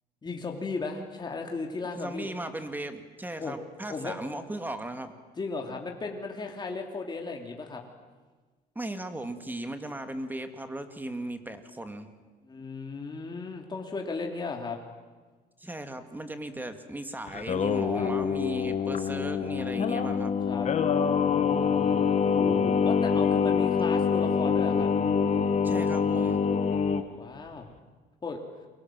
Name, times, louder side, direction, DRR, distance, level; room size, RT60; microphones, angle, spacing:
voice 1, 0.2-2.3 3.4-3.6 3.9-4.1 5.4-7.8 12.4-14.8 17.9-18.1 20.5-20.7 21.2-24.9 27.1-27.7 28.2-28.4, left 4 dB, 25° left, 2 dB, 3.2 m, -36 dB
voice 2, 1.9-5.1 8.8-12.1 15.6-20.3 25.6-26.4, right 1 dB, 10° right, 8 dB, 2.4 m, -37 dB
Singing, 17.3-27.0, left 6 dB, 45° left, 1.7 m, -25 dB
29.5 x 23.0 x 7.7 m, 1.3 s
cardioid pair, 110°, 17 cm